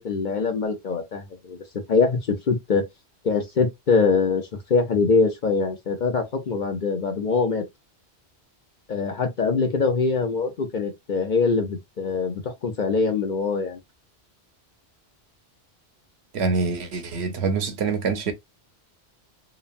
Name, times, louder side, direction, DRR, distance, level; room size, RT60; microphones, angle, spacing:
voice 1, 0.0-1.6 1.9-2.2 2.5-2.8 3.2-4.4 4.7-7.6 8.9-13.8, left 4 dB, 50° left, 0.6 m, -23 dB
voice 2, 16.3-18.3, right 4 dB, 75° right, 1.0 m, -25 dB
3.0 x 2.2 x 2.4 m
omnidirectional pair, 1.1 m